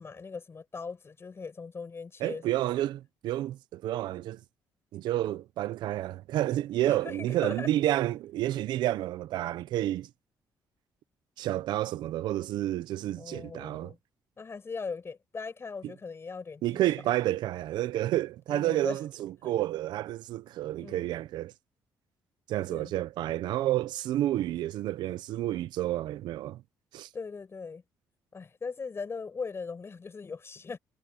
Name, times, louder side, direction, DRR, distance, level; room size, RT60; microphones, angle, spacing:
voice 1, 0.0-2.6 6.9-7.7 13.2-14.0 14.4-16.8 18.5-19.0 19.4-19.5 20.8-21.1 22.7-22.9 27.1-27.8 28.3-30.8, left 5 dB, 35° left, 7.5 m, -39 dB
voice 2, 2.2-4.4 4.9-10.1 11.4-13.9 16.6-21.5 22.5-26.6 26.9-27.1, right 14 dB, 80° right, 0.8 m, -30 dB
cardioid pair, 85°, 7 cm